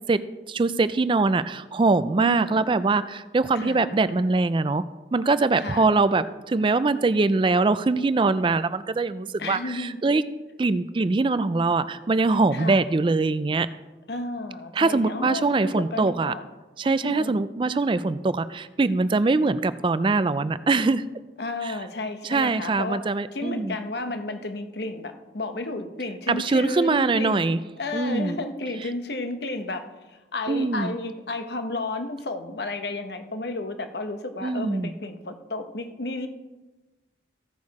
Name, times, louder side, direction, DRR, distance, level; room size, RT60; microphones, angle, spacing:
voice 1, 0.5-4.8 5.1-10.2 10.6-13.7 14.7-16.3 16.8-21.0 21.6-21.7 22.2-23.8 26.3-27.6 27.9-28.4 30.5-30.9 34.4-34.9, right 3 dB, 25° right, 14 dB, 0.3 m, -23 dB
voice 2, 2.2-2.6 3.5-3.9 5.5-5.8 9.4-10.0 12.5-12.8 14.1-16.4 16.8-17.3 21.4-23.0 23.3-36.3, left 2 dB, 65° left, 7 dB, 1.0 m, -32 dB
15.0 x 6.4 x 4.8 m, 1.2 s
head